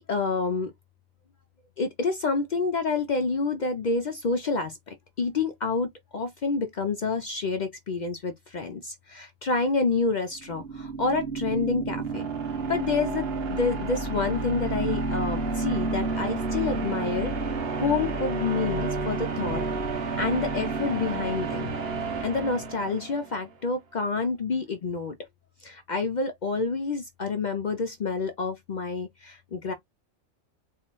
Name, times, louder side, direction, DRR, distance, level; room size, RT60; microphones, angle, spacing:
voice 1, 0.1-0.7 1.8-12.3 12.7-19.6 20.2-21.7 22.2-25.1 25.6-29.7, left 4 dB, 60° left, 0.5 m, -28 dB
sound 1, 10.4-23.4, right 3 dB, 55° right, 1.1 m, -30 dB
4.3 x 2.4 x 2.9 m
omnidirectional pair, 1.3 m